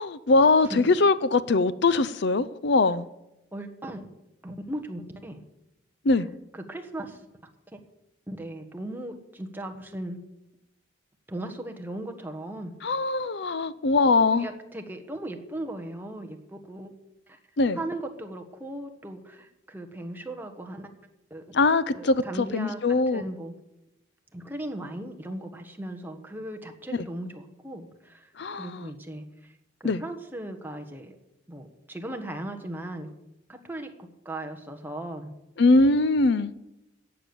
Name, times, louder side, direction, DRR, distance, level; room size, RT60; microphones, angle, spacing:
voice 1, 0.0-3.1 6.0-6.3 12.8-14.5 17.6-17.8 21.5-23.2 28.4-28.7 29.8-30.0 35.6-36.5, left 3 dB, 55° left, 16 dB, 0.5 m, -22 dB
voice 2, 3.5-4.0 4.4-5.4 6.5-7.2 7.7-7.8 8.3-10.2 11.3-12.7 14.0-16.9 17.3-17.4 17.7-20.9 21.3-21.6 21.9-22.8 23.1-23.5 24.3-31.2 31.5-33.1 33.5-35.3, right 1 dB, 10° right, 4 dB, 1.3 m, -37 dB
14.5 x 8.7 x 6.9 m, 0.91 s
head